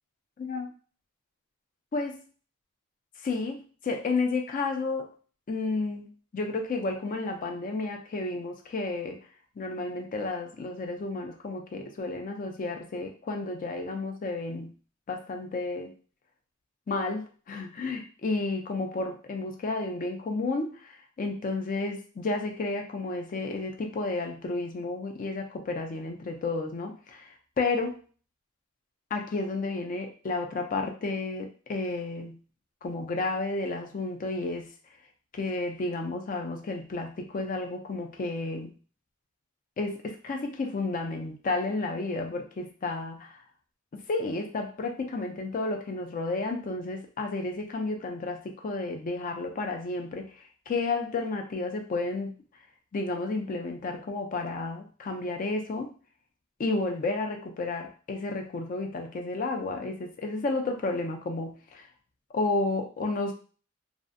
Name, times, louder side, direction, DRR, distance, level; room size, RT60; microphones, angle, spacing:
voice 1, 1.9-2.2 3.2-5.1 5.5-6.1 6.3-9.2 9.6-14.7 15.1-15.9 16.9-27.3 27.6-28.0 29.1-32.4 32.8-34.7 35.3-38.7 39.8-43.4 43.9-50.3 50.7-52.4 52.9-55.9 56.6-61.9 62.3-63.3, left 3 dB, 40° left, 4 dB, 0.4 m, -32 dB
2.5 x 2.0 x 2.5 m, 0.39 s
head